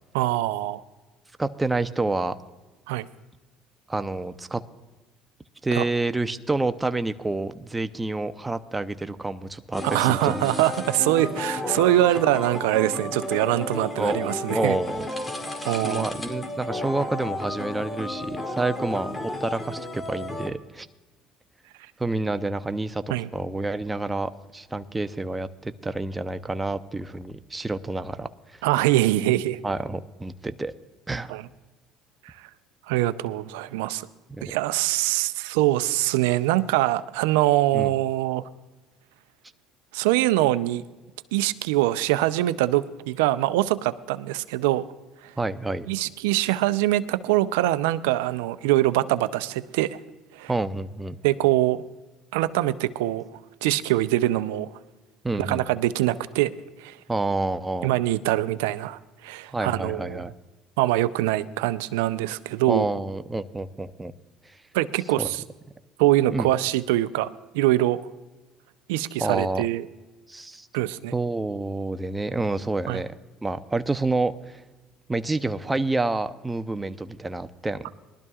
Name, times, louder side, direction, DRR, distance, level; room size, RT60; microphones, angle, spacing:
voice 1, 0.1-0.8 2.9-3.1 5.7-5.8 9.8-14.8 15.7-16.1 23.1-23.3 28.6-29.6 31.3-31.4 32.2-32.4 32.9-34.1 34.4-38.5 39.9-40.8 41.3-44.9 45.2-45.3 45.9-50.0 50.3-50.5 51.2-51.8 52.3-53.2 53.6-54.7 55.4-56.5 56.8-57.0 57.8-60.2 60.8-62.9 64.7-65.4 66.0-68.0 68.9-69.9 70.7-71.1 72.9-73.0, right 15 dB, 85° right, 14 dB, 0.5 m, -23 dB
voice 2, 1.4-2.4 3.9-4.6 5.6-10.5 14.0-14.2 14.5-15.1 15.6-20.9 22.0-23.0 23.3-28.6 29.6-30.7 31.1-31.3 37.7-37.9 45.4-45.9 50.5-51.2 55.2-55.7 57.1-57.9 59.5-60.3 62.7-64.1 65.2-65.3 66.3-66.5 69.2-69.6 70.3-70.7 71.1-73.1 73.4-74.6 75.1-77.9, right 2 dB, 15° right, 10 dB, 0.7 m, -28 dB
sound 1, 9.7-20.5, left 1 dB, 20° left, 2.3 m, -32 dB
21.5 x 12.5 x 2.4 m, 1.2 s
supercardioid pair, 80°, 0 cm